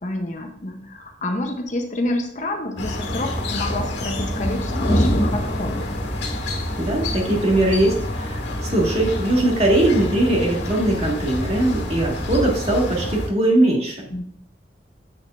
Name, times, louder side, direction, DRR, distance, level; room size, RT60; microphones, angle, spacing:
voice 1, 0.0-5.9 14.1-14.2, left 1 dB, 40° left, 4 dB, 0.8 m, -28 dB
sound 1, 2.8-13.3, left 1 dB, 65° left, 1.9 m, -26 dB
voice 2, 6.8-14.0, right 1 dB, 35° right, -2 dB, 1.8 m, -20 dB
8.5 x 6.5 x 2.5 m, 0.62 s
head